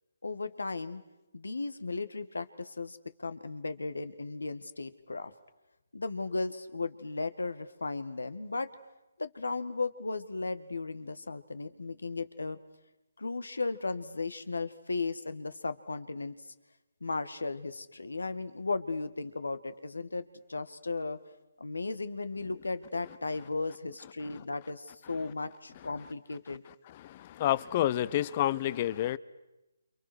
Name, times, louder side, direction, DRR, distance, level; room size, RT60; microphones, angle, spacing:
voice 1, 0.2-1.0 1.3-5.3 5.9-8.7 9.2-12.6 13.2-16.3 17.0-21.2 21.6-26.6, left 3 dB, 90° left, 12 dB, 2.0 m, -36 dB
voice 2, 27.1-29.2, left 13 dB, 35° left, 19 dB, 0.8 m, -29 dB
28.5 x 28.0 x 6.3 m, 0.97 s
hypercardioid pair, 155°, 0 cm